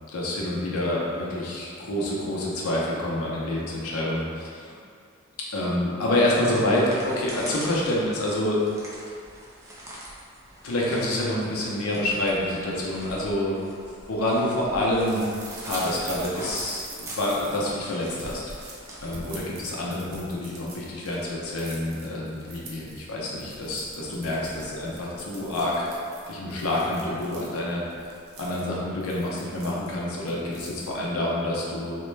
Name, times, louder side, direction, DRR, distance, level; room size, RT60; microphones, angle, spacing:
voice 1, 0.1-4.7 5.5-8.6 10.6-13.6 14.1-15.2 15.6-18.5 19.0-25.9 26.3-27.8 28.4-32.0, left 1 dB, 90° left, -4 dB, 0.6 m, -27 dB
sound 1, 6.2-19.9, right 1 dB, 15° right, 0.4 m, -43 dB
sound 2, 14.2-31.2, right 3 dB, 80° right, 0.6 m, -45 dB
3.1 x 2.1 x 3.2 m, 2.4 s
head